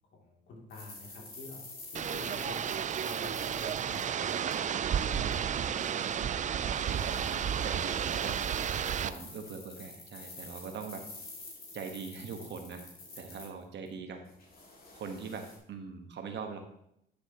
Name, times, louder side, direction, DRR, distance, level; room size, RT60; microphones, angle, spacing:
voice 1, 0.2-1.6 1.9-2.6 3.0-4.8, left 2 dB, 70° left, -2 dB, 2.7 m, -48 dB
sound 1, 0.7-4.7 5.1-5.3 6.7-13.9 14.3-15.6, left 3 dB, 45° left, 2.8 m, -49 dB
sound 2, 1.9-9.1, right 8 dB, 40° right, 0.4 m, -32 dB
voice 2, 5.7-6.3 6.7-8.5 9.0-11.1 11.7-12.9 13.2-14.2 14.9-16.6, right 5 dB, 65° right, 5 dB, 1.3 m, -42 dB
10.0 x 6.6 x 2.9 m, 0.75 s
cardioid pair, 90°, 20 cm